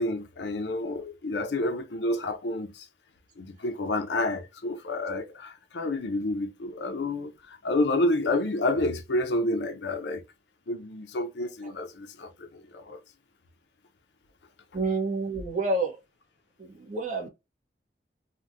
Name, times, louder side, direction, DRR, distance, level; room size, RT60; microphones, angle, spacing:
voice 1, 0.0-2.9 3.4-10.2 10.7-13.0, left 2 dB, 80° left, 0.6 m, -29 dB
voice 2, 14.7-15.9 16.6-17.3, right 3 dB, 45° right, 1.1 m, -28 dB
3.4 x 2.2 x 2.6 m
head